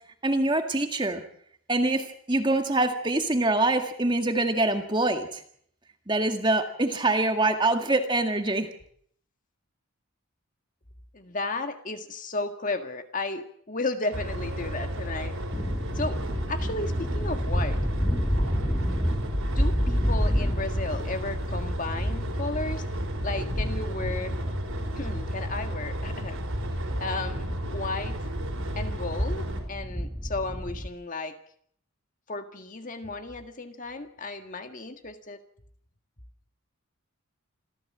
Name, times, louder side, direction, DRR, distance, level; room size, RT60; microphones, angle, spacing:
voice 1, 0.2-1.2 1.7-5.4 6.1-8.7, right 2 dB, 20° right, 5 dB, 2.0 m, -25 dB
voice 2, 11.1-15.3 16.0-16.2 16.5-17.8 19.1-22.8 23.2-24.3 25.0-26.4 27.0-28.2 28.8-31.4 32.3-35.4, left 2 dB, 35° left, 7 dB, 1.7 m, -34 dB
sound 1, 14.1-29.6, equal, 70° right, 4.8 m, -33 dB
sound 2, 15.5-30.9, equal, 5° left, 1.5 m, -30 dB
27.0 x 15.0 x 7.5 m, 0.64 s
head